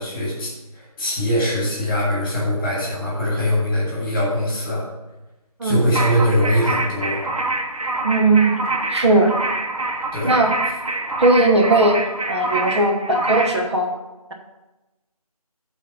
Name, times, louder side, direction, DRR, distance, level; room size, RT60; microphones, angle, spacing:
voice 1, 0.0-4.8 5.6-7.2 10.1-10.3, equal, 15° left, -6 dB, 2.6 m, -22 dB
sound 1, 5.9-13.6, right 2 dB, 65° right, 1.2 m, -26 dB
voice 2, 8.0-8.6 8.9-9.3 10.2-10.5 11.2-12.0 12.3-13.9, right 2 dB, 45° right, 1 dB, 1.1 m, -17 dB
8.3 x 4.1 x 7.0 m, 1.0 s
figure-of-eight pair, 170°, 20 cm